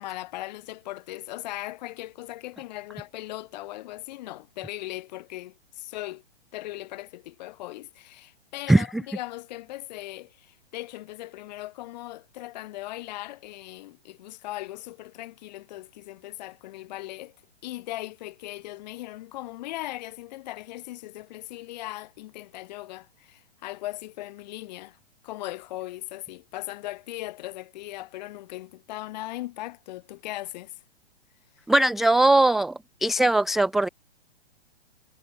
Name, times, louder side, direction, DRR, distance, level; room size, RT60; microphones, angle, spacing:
voice 1, 0.0-6.2 6.5-17.3 17.6-25.0 25.2-30.8, left 17 dB, 40° left, 7.0 m, -38 dB
voice 2, 31.7-32.7 33.0-33.9, right 2 dB, ahead, 0.4 m, -19 dB
figure-of-eight pair, 115°, 33 cm